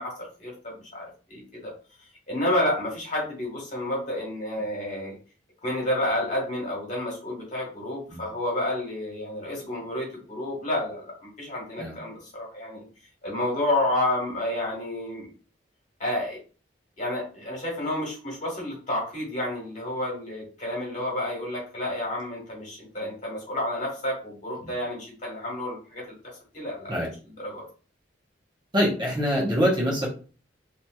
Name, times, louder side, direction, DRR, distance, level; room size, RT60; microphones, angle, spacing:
voice 1, 0.0-1.7 2.3-5.2 5.6-12.9 13.2-15.3 16.0-16.4 17.0-26.1 26.5-26.9 27.4-27.6, left 1 dB, 45° left, -3 dB, 1.4 m, -30 dB
voice 2, 28.7-30.1, equal, 25° right, -3 dB, 0.8 m, -24 dB
3.0 x 2.7 x 2.3 m, 0.38 s
head